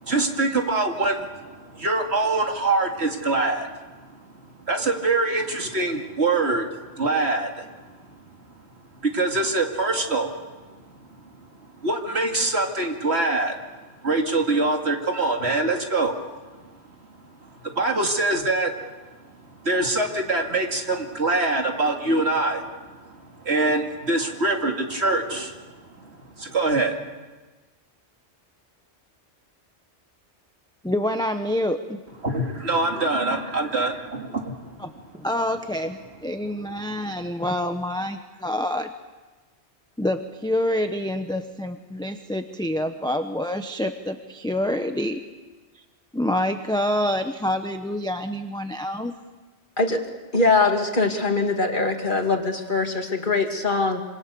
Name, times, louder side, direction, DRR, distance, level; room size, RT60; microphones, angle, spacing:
voice 1, 0.0-3.8 4.6-7.7 9.0-10.3 11.8-13.6 14.0-16.2 17.6-18.7 19.6-22.7 23.0-25.7 26.0-27.0 32.2-35.0 36.8-36.9, right 2 dB, 70° right, 3 dB, 2.7 m, -24 dB
voice 2, 30.8-32.0 34.8-34.9 35.2-38.9 40.0-45.2 46.1-49.1, left 1 dB, 5° left, 6 dB, 1.0 m, -27 dB
voice 3, 50.3-54.0, left 3 dB, 45° left, 4 dB, 2.5 m, -22 dB
26.5 x 26.5 x 7.0 m, 1.3 s
omnidirectional pair, 1.2 m